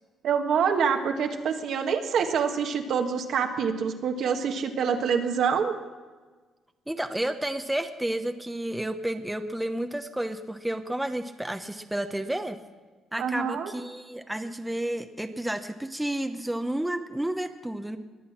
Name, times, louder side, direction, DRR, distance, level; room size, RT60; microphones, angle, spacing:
voice 1, 0.2-5.7 13.2-13.7, right 6 dB, 65° right, 4 dB, 1.6 m, -26 dB
voice 2, 6.9-12.6 13.1-18.0, right 1 dB, 5° right, 7 dB, 0.9 m, -31 dB
22.0 x 8.3 x 6.0 m, 1.4 s
cardioid pair, 100°, 0 cm